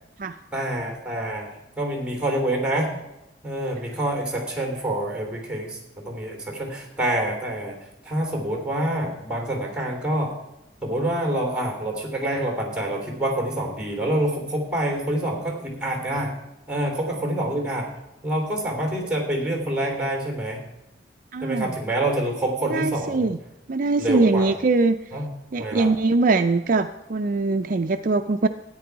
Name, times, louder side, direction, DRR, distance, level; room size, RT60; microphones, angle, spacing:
voice 1, 0.5-1.5 1.8-2.9 3.4-7.8 8.0-10.4 10.8-16.3 16.7-17.9 18.2-20.6 21.4-23.3 24.0-24.5 25.1-25.3 25.6-25.9, right 1 dB, 5° right, 2 dB, 3.1 m, -26 dB
voice 2, 21.3-21.7 22.7-23.4 23.7-25.0 25.5-28.5, right 3 dB, 50° right, 8 dB, 0.5 m, -22 dB
13.5 x 9.5 x 4.6 m, 0.93 s
head